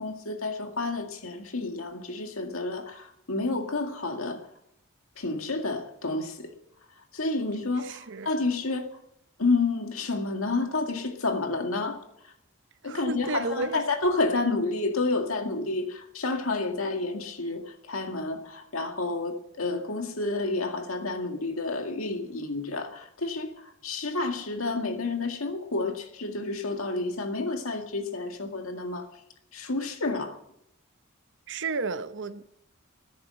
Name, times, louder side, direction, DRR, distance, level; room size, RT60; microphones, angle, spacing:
voice 1, 0.0-4.5 5.2-6.5 7.1-8.9 9.4-12.3 12.8-29.1 29.5-30.4, left 3 dB, 75° left, 2.1 m, -30 dB
voice 2, 7.8-8.3 12.8-13.8 31.5-32.4, right 3 dB, 60° right, 0.9 m, -32 dB
14.5 x 10.0 x 7.7 m
head